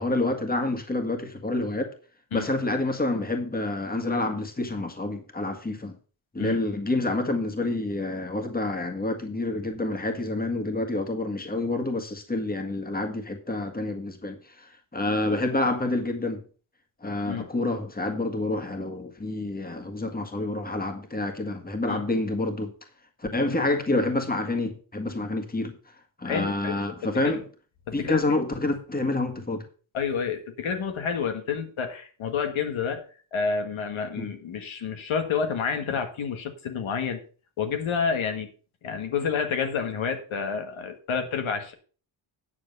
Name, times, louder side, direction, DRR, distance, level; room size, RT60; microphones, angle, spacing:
voice 1, 0.0-1.9 2.3-5.9 6.3-16.4 17.0-22.7 23.2-25.7 26.2-27.4 27.9-29.6 34.1-34.3, left 2 dB, 20° left, 1.7 m, -28 dB
voice 2, 26.2-26.8 27.2-27.4 27.9-28.2 29.9-33.0 33.3-37.2 37.6-38.5 38.8-41.7, left 6 dB, 85° left, 1.8 m, -29 dB
9.6 x 6.8 x 5.5 m
wide cardioid pair, 120°, 46 cm